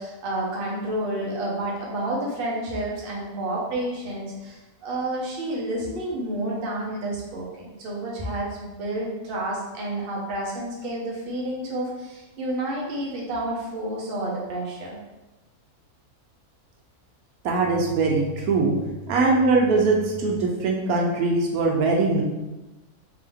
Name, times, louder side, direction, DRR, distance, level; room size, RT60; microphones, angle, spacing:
voice 1, 0.0-15.0, right 1 dB, 45° right, -4 dB, 1.0 m, -30 dB
voice 2, 17.4-18.8 19.1-22.2, right 3 dB, 85° right, 0 dB, 1.1 m, -21 dB
3.6 x 2.9 x 3.5 m, 1.1 s
omnidirectional pair, 1.5 m